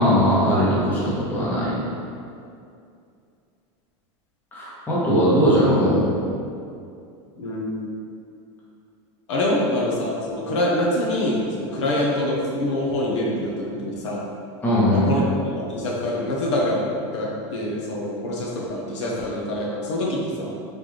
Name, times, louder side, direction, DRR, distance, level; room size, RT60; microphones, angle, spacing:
voice 1, 0.0-1.7 4.5-6.0 14.6-15.1, equal, 10° left, -8 dB, 0.9 m, -19 dB
voice 2, 7.4-7.8 9.3-14.2 14.9-15.2 15.5-16.8 17.1-20.5, left 1 dB, 85° left, -4 dB, 1.0 m, -25 dB
3.9 x 3.5 x 3.1 m, 2.4 s
supercardioid pair, 165°, 15 cm